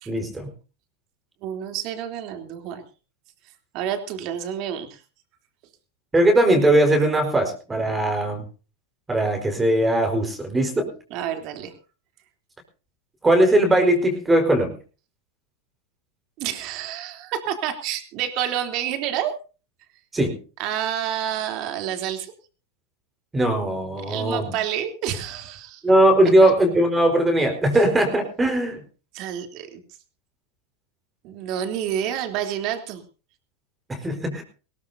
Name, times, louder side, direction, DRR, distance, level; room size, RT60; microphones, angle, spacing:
voice 1, 0.1-0.5 6.1-8.4 9.1-10.9 13.2-14.7 20.1-20.4 23.3-24.5 25.8-28.8 33.9-34.4, right 1 dB, 15° right, 4 dB, 4.6 m, -19 dB
voice 2, 1.4-2.8 3.7-5.0 11.1-11.7 16.4-19.3 20.6-22.3 24.1-25.8 26.4-26.5 29.1-29.8 31.2-33.0, right 10 dB, 50° right, 6 dB, 3.3 m, -29 dB
21.0 x 17.5 x 2.8 m, 0.35 s
hypercardioid pair, 115°, 0 cm